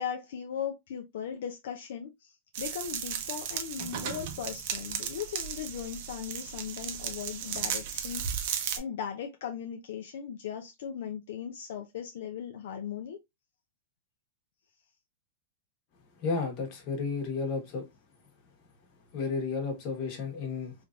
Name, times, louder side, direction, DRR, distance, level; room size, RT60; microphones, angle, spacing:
voice 1, 0.0-13.2, left 8 dB, 75° left, 0.5 m, -38 dB
sound 1, 2.5-8.8, right 8 dB, 60° right, 0.6 m, -35 dB
voice 2, 16.2-17.8 19.1-20.7, left 4 dB, 45° left, 1.2 m, -32 dB
3.1 x 2.5 x 2.3 m
supercardioid pair, 145°, 0 cm